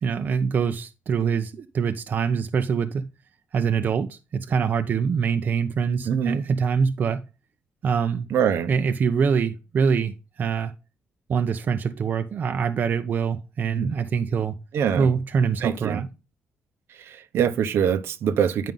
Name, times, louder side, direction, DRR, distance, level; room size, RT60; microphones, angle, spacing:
voice 1, 0.0-3.1 3.5-7.2 7.8-8.3 8.7-10.7 11.3-14.5 15.0-16.1, right 6 dB, 45° right, 0.5 m, -24 dB
voice 2, 6.1-6.4 8.3-8.8 13.7-13.9 14.7-15.1 15.6-16.0 17.0-18.7, right 8 dB, 70° right, 0.8 m, -24 dB
9.2 x 5.1 x 3.7 m
cardioid pair, 140°, 4 cm